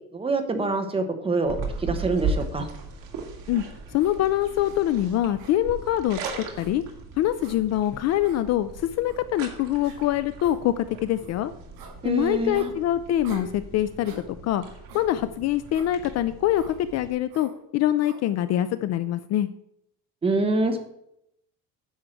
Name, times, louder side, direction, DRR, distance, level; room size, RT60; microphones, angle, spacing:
voice 1, 0.1-2.7 12.0-12.7 20.2-20.8, right 3 dB, 15° right, 6 dB, 0.9 m, -25 dB
sound 1, 1.4-17.1, right 4 dB, 65° right, 2.2 m, -37 dB
voice 2, 3.9-6.8 7.2-11.5 12.0-14.1 14.4-14.6 14.9-19.5, left 12 dB, 45° left, 13 dB, 0.4 m, -24 dB
sound 2, 4.0-4.2 4.6-4.8 5.4-6.0 6.5-6.7 7.4-7.6 8.2-8.4 9.1-9.2 9.8-10.0 10.4-10.6 11.1-11.3 11.8-11.9 12.5-12.7 13.2-13.5 14.0-14.3 14.9-15.1 15.7-15.9 16.5-16.8 17.3-17.5 18.0-18.2, right 3 dB, 80° right, 4.6 m, -43 dB
10.0 x 4.7 x 7.7 m, 0.78 s
cardioid pair, 170°, 37 cm